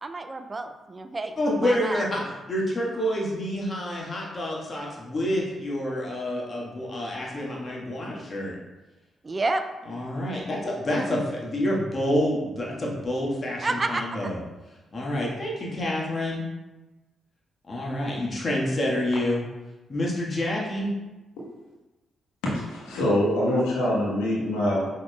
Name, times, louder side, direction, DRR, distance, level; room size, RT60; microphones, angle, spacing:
voice 1, 0.0-2.1 9.2-9.6 13.6-14.3, right 2 dB, 35° right, 8 dB, 0.4 m, -30 dB
voice 2, 1.4-2.2 2.5-8.5 9.9-14.4 14.9-16.4 17.7-19.4 19.9-20.9, left 1 dB, 40° left, -3 dB, 1.4 m, -28 dB
voice 3, 22.7-24.9, left 1 dB, 80° left, -5 dB, 1.1 m, -24 dB
5.8 x 3.7 x 2.3 m, 1.1 s
hypercardioid pair, 40°, 0 cm